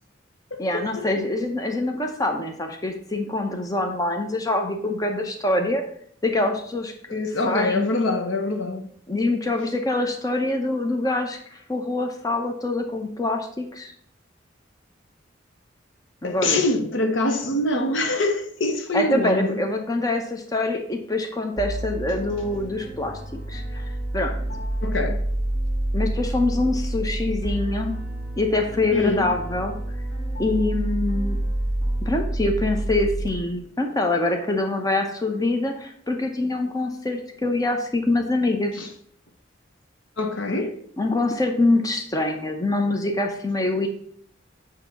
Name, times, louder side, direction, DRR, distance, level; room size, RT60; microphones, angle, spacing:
voice 1, 0.6-5.8 6.2-7.9 9.1-13.9 16.2-16.6 18.9-23.2 23.5-24.3 25.9-28.0 28.4-29.7 30.4-31.4 32.0-38.9 41.0-43.9, left 2 dB, 20° left, 0.8 m, -25 dB
voice 2, 7.1-8.9 16.2-19.6 24.8-25.2 28.9-29.3 38.8-38.9 40.2-40.8, left 2 dB, 80° left, 0.9 m, -24 dB
sound 1, 21.6-33.3, right 1 dB, 40° left, 1.9 m, -28 dB
8.6 x 2.9 x 5.8 m
head